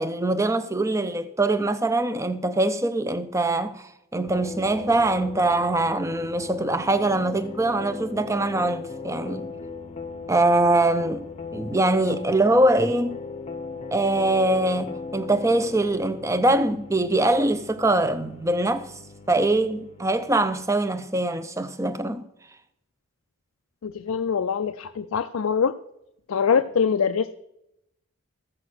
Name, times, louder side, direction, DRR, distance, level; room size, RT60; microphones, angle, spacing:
voice 1, 0.0-9.5 10.3-11.2 11.5-13.2 13.9-18.9 19.3-22.2, right 2 dB, 15° right, 0.6 m, -23 dB
sound 1, 4.3-21.0, left 4 dB, 30° left, 0.8 m, -38 dB
voice 2, 23.8-25.8 26.3-27.3, left 6 dB, 85° left, 0.5 m, -23 dB
14.0 x 7.8 x 6.1 m
head